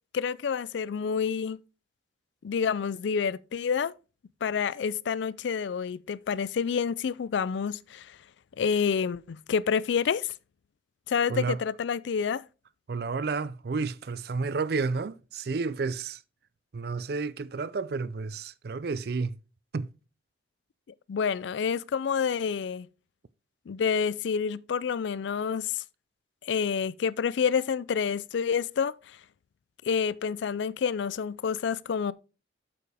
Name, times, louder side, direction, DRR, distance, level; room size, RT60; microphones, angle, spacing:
voice 1, 0.1-1.6 2.4-3.9 4.4-8.2 8.6-10.3 11.1-12.4 21.1-22.9 23.7-25.8 26.4-28.9 29.8-32.1, left 6 dB, 70° left, 0.4 m, -28 dB
voice 2, 12.9-16.2 16.7-19.4 19.7-19.9, right 4 dB, 55° right, 0.4 m, -31 dB
8.6 x 6.9 x 3.4 m
head